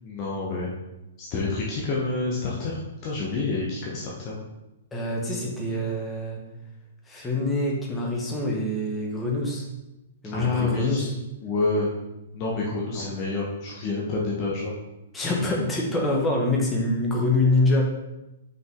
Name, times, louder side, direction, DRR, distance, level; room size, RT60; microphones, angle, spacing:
voice 1, 0.0-0.7 1.2-4.4 10.3-11.1 11.4-11.9 12.3-14.7, left 3 dB, 35° left, -4 dB, 1.2 m, -28 dB
voice 2, 4.9-6.4 7.1-9.7 10.2-11.1 12.9-13.1 15.1-17.8, left 2 dB, 10° left, -2 dB, 1.5 m, -25 dB
5.6 x 5.3 x 3.7 m, 0.96 s
figure-of-eight pair, 110°, 0 cm